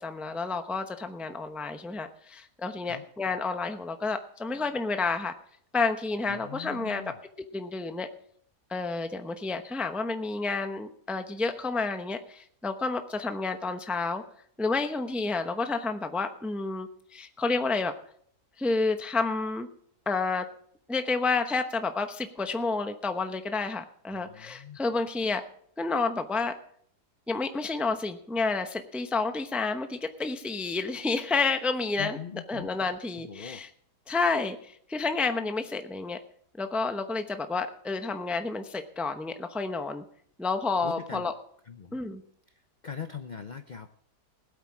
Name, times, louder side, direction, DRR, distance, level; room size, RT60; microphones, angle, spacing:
voice 1, 0.0-5.3 5.7-7.1 7.5-8.1 8.7-14.2 14.6-17.9 18.6-19.7 20.1-20.5 20.9-25.4 25.8-26.5 27.3-32.2 32.5-33.7 34.1-36.2 36.6-40.0 40.4-41.3 41.9-42.2, left 3 dB, ahead, 7 dB, 0.5 m, -30 dB
voice 2, 6.3-7.2 24.1-24.8 32.0-32.7 33.2-33.6 40.8-41.2 41.7-42.0 42.8-43.9, left 7 dB, 55° left, 9 dB, 0.5 m, -41 dB
19.5 x 8.4 x 4.9 m, 0.63 s
omnidirectional pair, 1.7 m